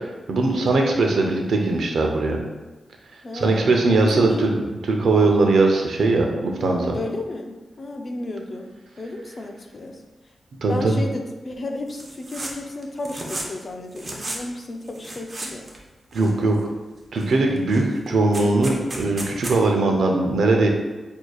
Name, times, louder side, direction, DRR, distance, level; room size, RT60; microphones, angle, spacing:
voice 1, 0.3-2.4 3.3-4.5 4.9-7.0 10.6-10.9 16.1-16.6 17.1-20.7, right 3 dB, 85° right, 2 dB, 0.6 m, -20 dB
voice 2, 3.2-4.6 6.9-8.7 9.0-10.0 10.7-15.6, left 2 dB, 40° left, 3 dB, 0.5 m, -33 dB
sound 1, 11.9-12.5 12.8-13.6 13.9-14.4 14.9-15.8 16.1-16.7 17.1-17.3 17.6-19.6, right 1 dB, 35° right, 0.7 m, -34 dB
6.1 x 2.7 x 2.4 m, 1.2 s
wide cardioid pair, 100°, 0 cm